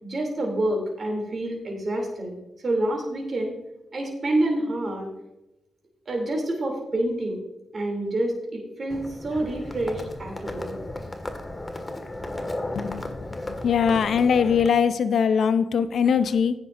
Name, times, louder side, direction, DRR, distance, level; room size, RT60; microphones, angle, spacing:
voice 1, 0.0-2.4 2.6-3.5 3.9-5.1 6.1-7.4 7.7-10.8, right 1 dB, 50° right, 0 dB, 2.9 m, -27 dB
Livestock farm animals working animals, 8.9-14.7, left 1 dB, 25° left, 1.8 m, -34 dB
voice 2, 12.8-13.2 13.4-16.5, left 7 dB, 70° left, 13 dB, 0.6 m, -21 dB
14.5 x 9.7 x 2.6 m, 0.94 s
hypercardioid pair, 40°, 0 cm